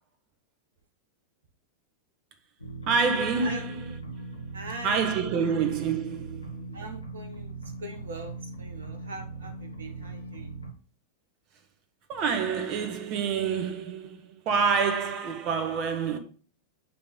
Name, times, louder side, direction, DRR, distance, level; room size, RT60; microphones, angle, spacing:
sound 1, 2.6-10.7, right 3 dB, 85° left, 1.1 m, -40 dB
voice 1, 2.9-4.2 4.8-6.8 12.1-16.2, right 5 dB, 40° right, 1.3 m, -27 dB
voice 2, 4.5-5.2 6.7-10.5, right 2 dB, 65° right, 1.5 m, -41 dB
8.4 x 3.5 x 5.4 m
figure-of-eight pair, 90°, 0 cm